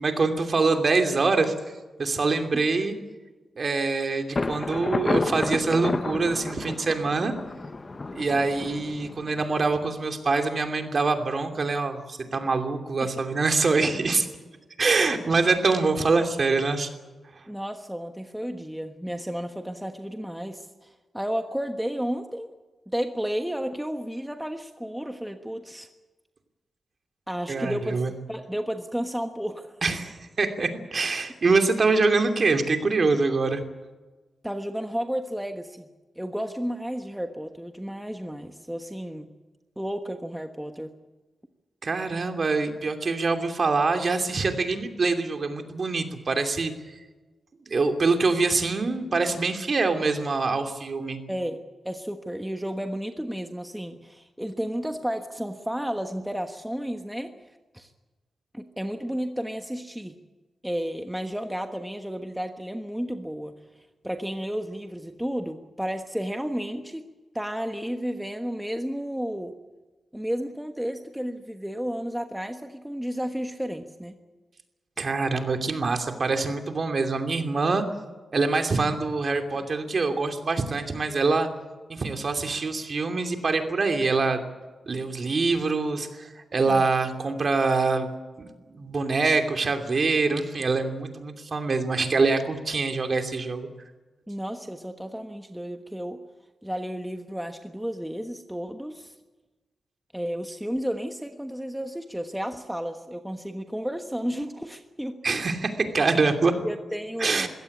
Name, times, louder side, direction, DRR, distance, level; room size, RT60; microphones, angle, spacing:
voice 1, 0.0-1.5 2.0-3.0 3.6-7.3 8.1-14.3 14.8-16.9 27.5-28.1 29.8-33.6 41.8-46.7 47.7-51.2 75.0-77.8 78.3-81.5 81.9-84.4 84.9-88.1 88.4-93.7 105.2-106.5 107.2-107.5, right 3 dB, 45° right, 6 dB, 2.8 m, -24 dB
Thunder, 4.3-10.0, left 3 dB, 30° left, 0.7 m, -31 dB
voice 2, 17.5-22.5 22.9-25.9 27.3-28.0 28.3-29.8 34.4-35.9 36.2-39.3 39.8-40.9 51.3-51.6 51.8-57.3 57.7-57.9 58.5-60.2 60.6-63.5 64.0-67.0 67.3-69.6 70.1-74.2 94.3-96.2 96.6-99.1 100.1-105.2 106.6-107.5, equal, 5° right, 6 dB, 1.3 m, -32 dB
22.0 x 17.0 x 8.5 m, 1.2 s
wide cardioid pair, 115°, 0 cm